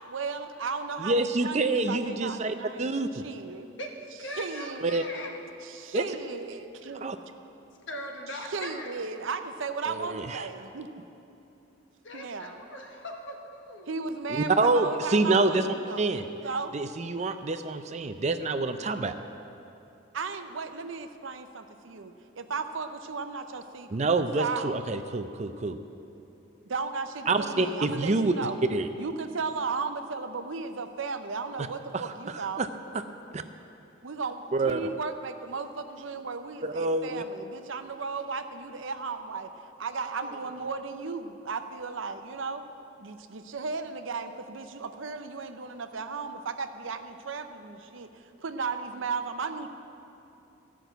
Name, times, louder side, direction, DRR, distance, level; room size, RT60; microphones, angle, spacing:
voice 1, 0.1-2.9 3.1-3.7 4.4-5.0 5.7-7.1 8.4-11.0 12.1-12.6 13.9-16.0 16.4-16.7 20.1-24.1 24.4-24.9 26.7-28.6 29.0-32.7 34.0-39.5 39.8-42.6 43.0-49.7, right 4 dB, 75° right, 8 dB, 0.7 m, -35 dB
voice 2, 1.0-3.2 4.8-5.0 5.9-6.0 7.0-7.2 9.9-10.5 14.3-16.2 16.7-19.2 23.9-25.8 27.3-28.3 28.7-28.9 31.9-32.7 33.3-33.4 34.5-34.8 36.6-37.2, right 3 dB, 35° right, 9 dB, 0.4 m, -27 dB
voice 3, 3.8-5.3 7.9-8.9 12.0-13.9 39.9-40.4, left 1 dB, 65° left, 1 dB, 1.5 m, -40 dB
14.0 x 6.1 x 8.0 m, 2.9 s
head